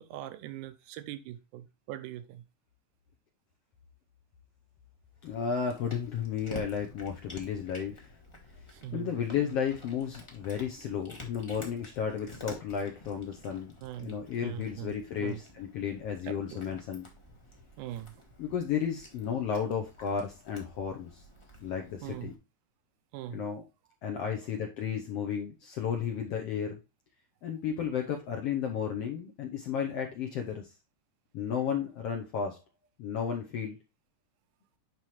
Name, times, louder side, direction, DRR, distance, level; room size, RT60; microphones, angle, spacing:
voice 1, 0.0-2.4 8.7-9.1 9.4-9.5 10.8-11.0 13.8-14.2 14.4-14.9 15.2-15.4 16.2-16.7 17.8-18.1 22.0-22.3 23.1-23.4, right 13 dB, 80° right, 2.0 m, -41 dB
voice 2, 5.2-8.1 8.9-13.7 14.0-17.1 18.4-21.2 21.6-22.3 23.3-23.6 24.0-26.8 27.4-30.7 31.3-32.6 33.0-33.8, left 7 dB, 70° left, 1.5 m, -33 dB
Cat, 5.2-22.3, left 1 dB, 30° left, 0.5 m, -50 dB
10.5 x 3.7 x 3.1 m
omnidirectional pair, 3.7 m